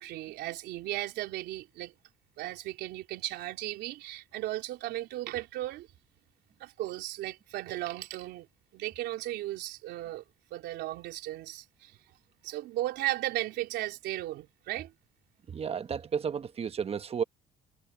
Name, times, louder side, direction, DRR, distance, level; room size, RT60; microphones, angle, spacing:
voice 1, 0.0-1.9 2.4-5.9 6.6-8.5 8.7-10.2 10.5-12.0 12.4-14.9, right 15 dB, 85° right, 3.5 m, -36 dB
voice 2, 15.5-17.2, right 7 dB, 35° right, 1.3 m, -32 dB
cardioid pair, 110°, 17 cm